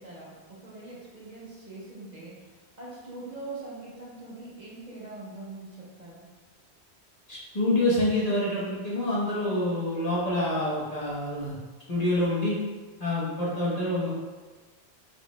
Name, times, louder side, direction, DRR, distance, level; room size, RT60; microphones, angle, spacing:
voice 1, 0.0-2.5 2.8-6.3 13.6-14.0, right 2 dB, 40° right, -6 dB, 1.1 m, -43 dB
voice 2, 7.3-11.6 11.9-12.6 13.0-14.1, left 1 dB, 35° left, -7 dB, 1.2 m, -27 dB
4.8 x 4.7 x 2.3 m, 1.3 s
omnidirectional pair, 1.1 m